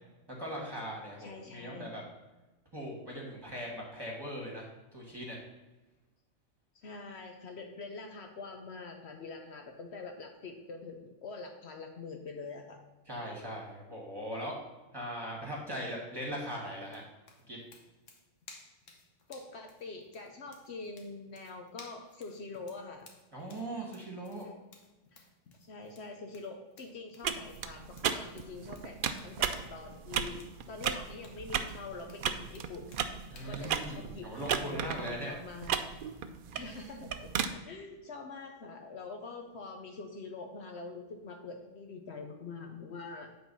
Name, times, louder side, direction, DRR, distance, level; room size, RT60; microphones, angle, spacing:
voice 1, 0.4-2.0 2.7-4.7 4.9-5.4 13.1-14.6 14.9-17.0 17.5-17.6 23.3-24.5 33.3-35.3, equal, 20° right, -2 dB, 2.0 m, -40 dB
voice 2, 1.2-1.9 6.7-12.8 19.3-23.1 24.4-24.5 25.1-25.2 25.7-30.4 30.7-32.8 33.4-35.8 36.5-43.5, left 3 dB, 65° left, 3 dB, 1.0 m, -45 dB
sound 1, 16.8-33.9, left 3 dB, 80° left, 1.4 m, -58 dB
sound 2, 27.2-37.5, right 7 dB, 60° right, 0.5 m, -36 dB
8.4 x 3.8 x 5.5 m, 1.1 s
omnidirectional pair, 1.3 m